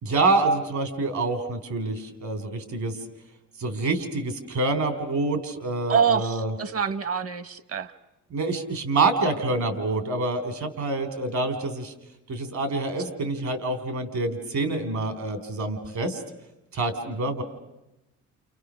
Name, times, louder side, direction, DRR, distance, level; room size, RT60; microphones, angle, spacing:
voice 1, 0.0-3.0 3.6-6.5 8.3-11.9 12.3-16.2 16.7-17.4, right 2 dB, 70° right, 9 dB, 3.5 m, -26 dB
voice 2, 5.9-7.9, right 7 dB, 50° right, 14 dB, 1.4 m, -25 dB
30.0 x 28.5 x 6.3 m, 0.95 s
cardioid pair, 90°, 30 cm